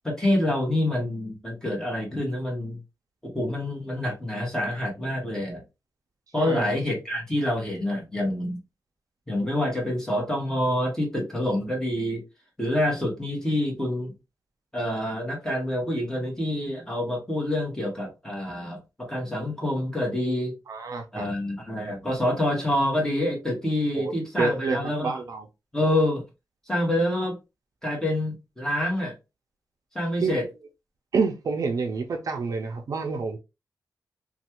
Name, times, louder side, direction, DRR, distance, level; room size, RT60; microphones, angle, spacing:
voice 1, 0.0-2.8 3.2-5.6 6.3-8.6 9.3-12.2 12.6-14.1 14.7-20.5 21.1-25.2 25.7-26.2 26.7-27.4 27.8-29.1 29.9-30.4, left 1 dB, 10° left, 1.3 m, -27 dB
voice 2, 6.4-6.7 20.7-21.3 23.9-25.5 30.2-30.4 31.1-33.4, right 4 dB, 60° right, 0.5 m, -28 dB
3.2 x 2.3 x 2.9 m
wide cardioid pair, 150°, 7 cm